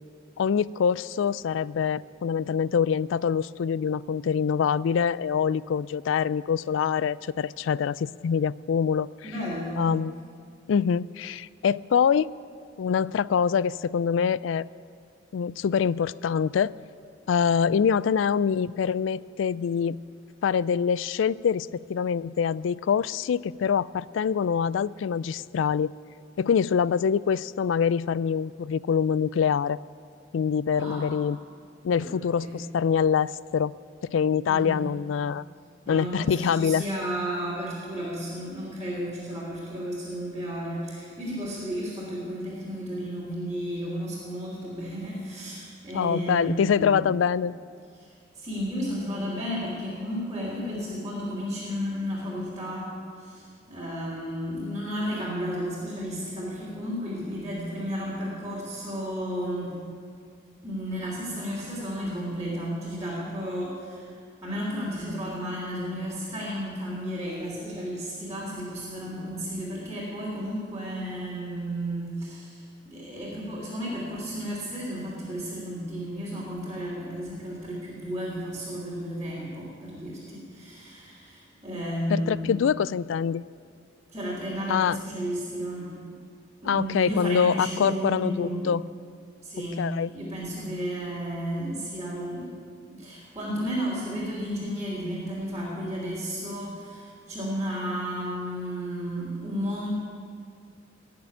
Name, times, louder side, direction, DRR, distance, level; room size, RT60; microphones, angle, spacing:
voice 1, 0.4-9.1 9.8-10.1 10.7-12.3 12.8-14.7 15.3-16.7 17.3-20.0 20.4-25.9 26.4-29.8 30.3-31.4 31.8-33.7 34.0-35.4 35.9-36.9 45.9-47.5 82.1-83.4 84.7-85.0 86.6-88.8 89.8-90.1, left 7 dB, 80° left, 20 dB, 0.3 m, -25 dB
voice 2, 9.2-9.9 30.7-31.2 32.0-32.1 32.4-32.6 34.5-34.8 35.8-47.1 48.0-59.8 60.6-64.1 64.4-82.5 84.1-86.0 86.6-88.7 89.4-89.9 90.1-92.5 92.9-99.9, equal, 20° right, -7 dB, 3.1 m, -33 dB
17.5 x 6.8 x 10.0 m, 2.3 s
head